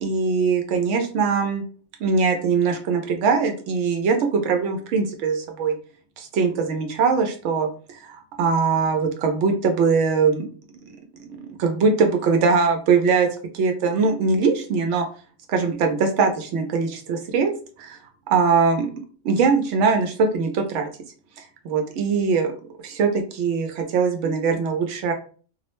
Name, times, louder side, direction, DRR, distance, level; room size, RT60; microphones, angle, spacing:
voice 1, 0.0-1.6 2.0-5.8 6.2-10.5 11.1-13.3 13.5-15.1 15.5-17.5 17.8-18.0 18.3-18.9 19.2-20.9 21.4-22.5 22.8-25.1, right 5 dB, 85° right, 4 dB, 0.9 m, -21 dB
2.4 x 2.0 x 2.9 m, 0.40 s
omnidirectional pair, 1.2 m